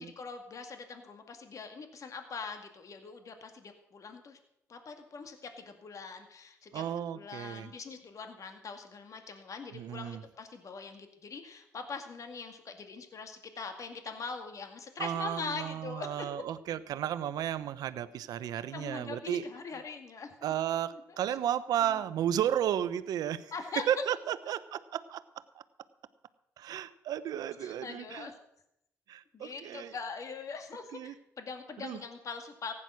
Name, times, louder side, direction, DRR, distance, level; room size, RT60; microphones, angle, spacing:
voice 1, 0.0-4.4 4.7-6.8 7.1-16.3 18.7-20.5 21.1-21.2 21.8-22.0 23.5-23.8 27.6-28.4 29.3-32.7, left 5 dB, 55° left, 6 dB, 2.1 m, -42 dB
voice 2, 6.7-7.7 9.7-10.2 15.0-19.4 20.4-25.2 26.6-28.3 29.1-29.9 30.9-31.1 31.8-32.0, right 10 dB, 75° right, 14 dB, 0.8 m, -33 dB
15.5 x 9.9 x 6.2 m, 0.79 s
supercardioid pair, 55°, 7 cm